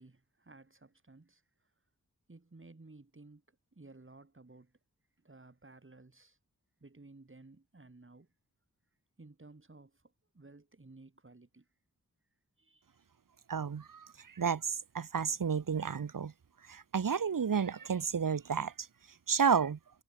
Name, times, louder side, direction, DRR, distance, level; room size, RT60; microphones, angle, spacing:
voice 1, 0.0-1.4 2.3-3.4 3.7-4.7 5.2-6.4 6.8-8.3 9.2-9.9 10.3-11.7 12.6-12.9, right 2 dB, 35° right, 3.6 m, -56 dB
voice 2, 13.5-16.3 16.7-18.9 19.3-19.8, right 6 dB, 65° right, 1.2 m, -31 dB
cardioid pair, 40°, 36 cm